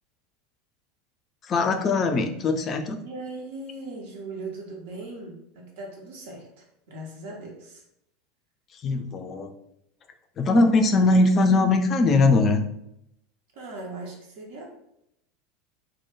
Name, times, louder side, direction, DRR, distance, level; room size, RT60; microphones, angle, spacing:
voice 1, 1.4-3.0 8.7-9.5 10.4-12.6, left 3 dB, 35° left, 5 dB, 0.3 m, -21 dB
voice 2, 3.0-7.8 13.5-14.6, right 2 dB, 65° right, -2 dB, 0.5 m, -39 dB
2.1 x 2.0 x 3.0 m, 0.78 s
figure-of-eight pair, 80°, 0 cm